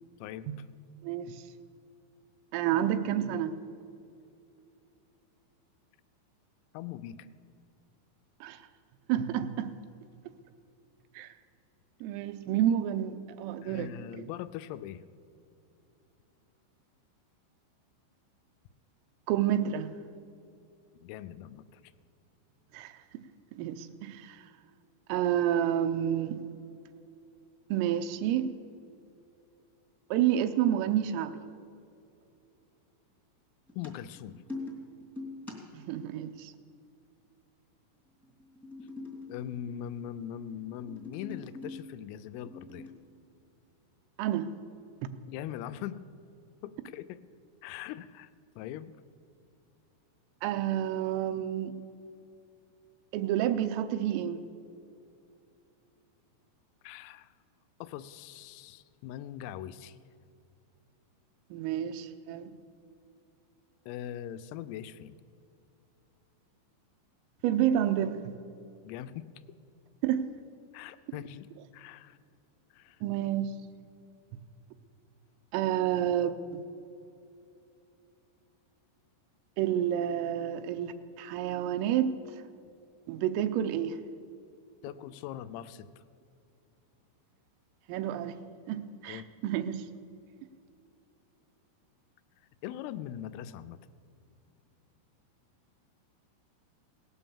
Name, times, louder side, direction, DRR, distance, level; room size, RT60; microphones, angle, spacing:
voice 1, 0.2-0.7 6.7-7.3 13.6-15.0 21.0-21.8 33.8-34.4 39.3-42.9 45.3-46.0 46.6-47.2 47.6-48.3 48.6-49.0 56.8-57.3 57.8-60.0 63.9-65.2 68.8-69.3 70.7-72.2 72.7-73.0 84.8-85.9 89.0-89.3 92.6-93.8, left 11 dB, 85° left, 13 dB, 3.2 m, -41 dB
voice 2, 1.0-1.4 2.5-3.5 8.4-8.6 9.1-9.7 11.2-11.3 12.0-13.9 14.2-14.3 19.3-19.9 22.7-23.0 23.5-24.4 25.1-26.4 27.7-28.5 30.1-31.4 35.7-36.5 44.2-44.5 50.4-51.7 53.1-54.4 61.5-62.5 67.4-68.3 70.0-70.3 73.0-73.5 75.5-76.6 79.6-82.1 83.1-84.0 87.9-88.4 88.7-89.9, right 10 dB, 85° right, 9 dB, 3.2 m, -29 dB
sound 1, 33.7-36.0 38.2-40.0 40.5-41.9 42.4-42.9, left 3 dB, ahead, 0.6 m, -43 dB
18.0 x 9.1 x 7.1 m, 2.7 s
omnidirectional pair, 5.9 m